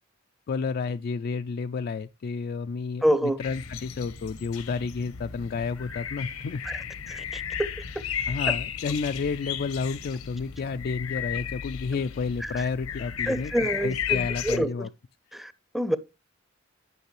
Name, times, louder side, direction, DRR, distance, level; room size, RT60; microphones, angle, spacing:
voice 1, 0.5-6.6 7.2-7.3 8.3-14.9, left 5 dB, 50° left, 0.3 m, -31 dB
voice 2, 3.0-3.4 6.6-7.7 8.5-8.6 11.9-12.0 12.4-12.5 13.3-14.9 15.3-16.0, equal, ahead, 0.6 m, -27 dB
sound 1, 3.4-14.6, left 9 dB, 85° left, 1.0 m, -34 dB
10.5 x 6.0 x 3.2 m
head